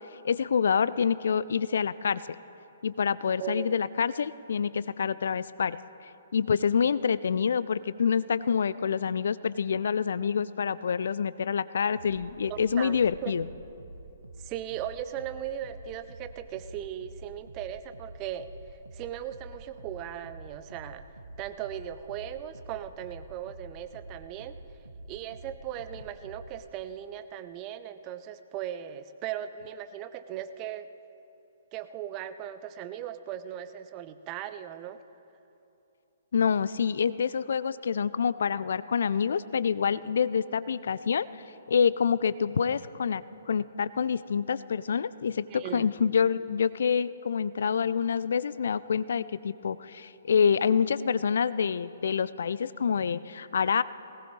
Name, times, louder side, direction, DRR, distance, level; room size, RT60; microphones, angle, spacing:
voice 1, 0.2-2.2 2.8-5.8 6.3-13.5 36.3-41.3 41.7-43.2 43.5-53.8, left 6 dB, 60° left, 17 dB, 0.3 m, -27 dB
voice 2, 3.4-3.8 12.5-13.3 14.4-21.1 21.4-30.9 31.7-35.0 45.5-45.9, right 10 dB, 25° right, 11 dB, 0.6 m, -38 dB
sound 1, 11.9-26.7, right 2 dB, 75° right, 0.9 m, -47 dB
20.0 x 18.0 x 3.2 m, 2.8 s
figure-of-eight pair, 125°, 0 cm